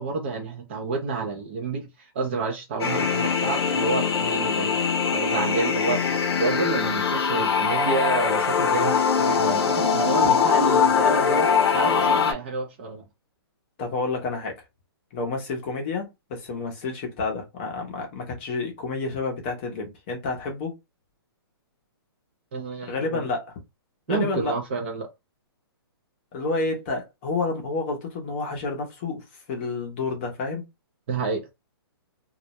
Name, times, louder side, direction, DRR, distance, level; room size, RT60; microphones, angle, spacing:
voice 1, 0.0-4.8 5.1-13.0 22.5-23.3 24.1-25.1 31.1-31.5, right 4 dB, 25° right, 0.4 m, -29 dB
sound 1, 2.8-12.3, left 6 dB, 75° left, 0.6 m, -22 dB
voice 2, 13.8-14.6 15.1-20.8 22.9-23.5 24.1-24.5 26.3-30.6, left 3 dB, 25° left, 0.6 m, -29 dB
2.2 x 2.0 x 2.8 m
hypercardioid pair, 170°, 13 cm